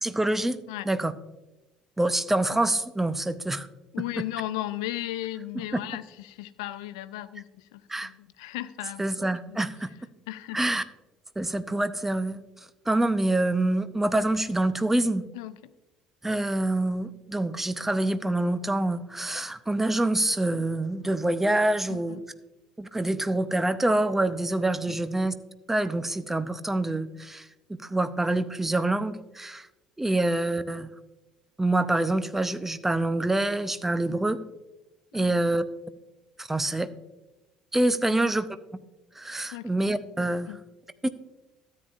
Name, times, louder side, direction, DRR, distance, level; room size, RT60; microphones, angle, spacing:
voice 1, 0.0-0.6 0.9-1.1 2.0-3.7 7.9-8.1 9.0-9.9 10.5-10.8 11.4-12.4 12.9-15.3 16.2-22.2 22.8-25.3 25.7-29.7 30.0-30.9 31.6-34.4 35.1-35.6 36.4-36.9 37.7-38.5 39.2-40.5 41.0-41.1, right 2 dB, 10° right, 13 dB, 0.6 m, -26 dB
voice 2, 3.9-9.0 9.4-9.6 10.3-10.6 15.3-15.7 21.9-22.2 24.9-25.0 34.1-34.2 35.1-35.3 38.1-38.2 39.5-39.7 40.5-40.6, left 15 dB, 70° left, 15 dB, 0.4 m, -36 dB
13.5 x 8.5 x 2.5 m, 1.0 s
figure-of-eight pair, 55°, 3 cm